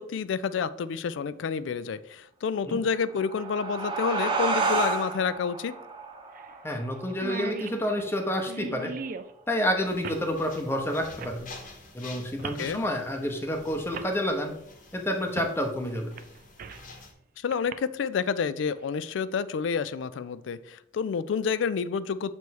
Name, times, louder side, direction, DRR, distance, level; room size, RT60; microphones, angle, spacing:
voice 1, 0.0-5.8 12.6-12.8 17.4-22.3, left 6 dB, 75° left, 16 dB, 0.3 m, -29 dB
sound 1, 3.0-8.2, right 3 dB, 25° right, 0.8 m, -31 dB
sound 2, 3.4-3.5 5.3-5.4 5.7-5.8 6.3-6.6 6.8-6.9 7.1-9.3 10.0-10.3 11.2-11.4 12.4-12.7 13.5-13.6 13.9-14.1 15.4-15.5 16.0-16.9 17.5-17.7, right 5 dB, 45° right, 0.4 m, -38 dB
voice 2, 6.6-8.9 9.5-11.5 11.9-14.6 14.9-16.1, equal, 10° left, 4 dB, 0.7 m, -29 dB
sound 3, 9.8-17.1, left 3 dB, 45° left, 1.0 m, -48 dB
6.8 x 3.1 x 4.6 m, 0.75 s
head